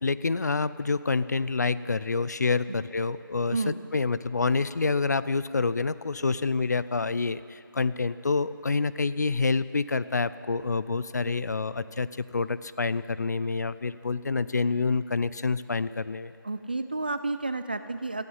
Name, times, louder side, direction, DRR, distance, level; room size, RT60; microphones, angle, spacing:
voice 1, 0.0-3.6 3.9-16.3, left 4 dB, 50° left, 16 dB, 0.4 m, -27 dB
voice 2, 16.4-18.2, right 3 dB, 25° right, 11 dB, 0.4 m, -31 dB
19.5 x 13.0 x 5.6 m, 2.5 s
figure-of-eight pair, 170°, 12 cm